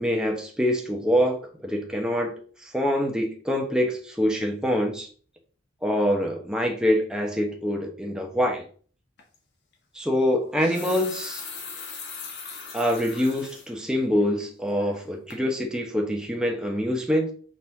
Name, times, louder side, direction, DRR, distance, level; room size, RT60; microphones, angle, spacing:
voice 1, 0.0-2.3 2.7-5.1 5.8-8.6 9.9-11.4 12.7-17.3, equal, 5° right, 1.1 m, -25 dB
sound 1, 9.2-9.4 10.4-13.7 14.1-14.2 14.7-15.1 15.3-15.4, left 5 dB, 60° left, 1.7 m, -39 dB
6.3 x 4.1 x 4.1 m
head